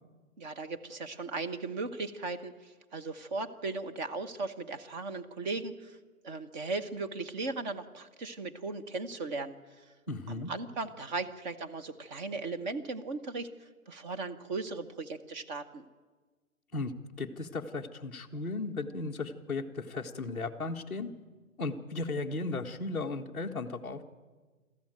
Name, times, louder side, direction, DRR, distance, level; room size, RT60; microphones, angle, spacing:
voice 1, 0.4-6.0 6.2-9.5 10.3-15.9, right 3 dB, 30° right, 7 dB, 1.1 m, -37 dB
voice 2, 10.1-10.5 16.7-16.9 17.2-21.1 21.6-24.0, left 3 dB, ahead, -6 dB, 0.5 m, -35 dB
21.5 x 14.0 x 9.2 m, 1.4 s
figure-of-eight pair, 135°, 42 cm